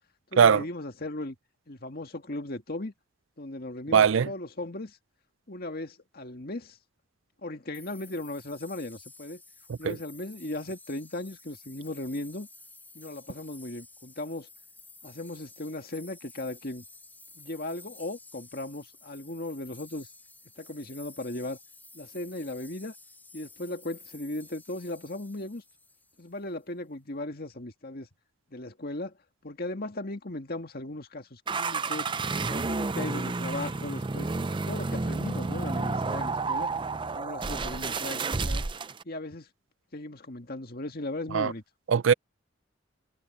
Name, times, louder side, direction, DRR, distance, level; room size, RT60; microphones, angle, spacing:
voice 1, 0.3-1.4 1.7-2.9 3.4-5.0 5.5-6.8 7.4-9.4 9.8-12.5 12.9-14.5 15.0-16.8 17.4-20.1 20.6-21.6 21.9-22.9 23.3-25.6 26.2-28.1 28.5-29.2 29.4-32.1 32.5-34.3 34.7-36.7 37.1-38.6 39.1-39.5 39.9-41.6, left 2 dB, 50° left, 2.0 m, -37 dB
voice 2, 3.9-4.3 9.8-10.0 41.3-41.5 41.9-42.1, right 7 dB, 80° right, 0.5 m, -20 dB
sound 1, 7.7-26.4, left 3 dB, 10° left, 2.9 m, -52 dB
sound 2, 31.5-39.0, right 3 dB, 25° right, 0.5 m, -30 dB
head